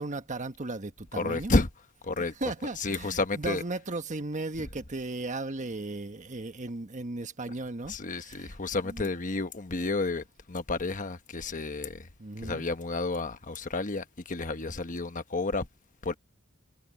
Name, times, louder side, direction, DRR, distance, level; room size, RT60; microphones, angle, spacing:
voice 1, 0.0-1.5 2.2-8.5 8.8-9.1 12.2-12.7, right 2 dB, 35° right, 1.3 m, -36 dB
voice 2, 1.1-1.7 2.0-2.3 2.8-3.6 7.9-12.1 12.4-15.7 16.0-16.1, left 3 dB, 40° left, 1.2 m, -31 dB
head